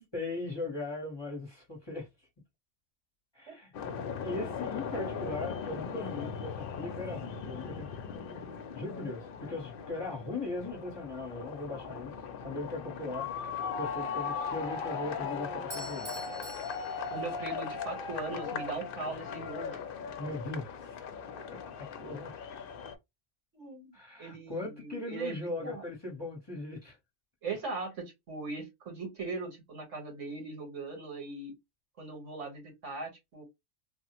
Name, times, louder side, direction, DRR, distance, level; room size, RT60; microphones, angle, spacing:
voice 1, 0.1-2.3 3.3-3.7 4.1-8.0 8.7-12.1 12.4-16.2 20.2-21.0 21.5-22.3 23.9-27.0, left 2 dB, 25° left, 0.8 m, -39 dB
sound 1, 3.7-22.9, left 6 dB, 60° left, 0.7 m, -38 dB
voice 2, 8.8-9.1 17.1-19.8 21.4-21.5 23.5-23.9 24.2-25.8 27.4-31.5 32.0-33.4, right 3 dB, 80° right, 1.7 m, -39 dB
Bell / Doorbell, 15.7-17.8, right 1 dB, 20° right, 0.7 m, -46 dB
3.4 x 2.0 x 2.8 m
omnidirectional pair, 1.2 m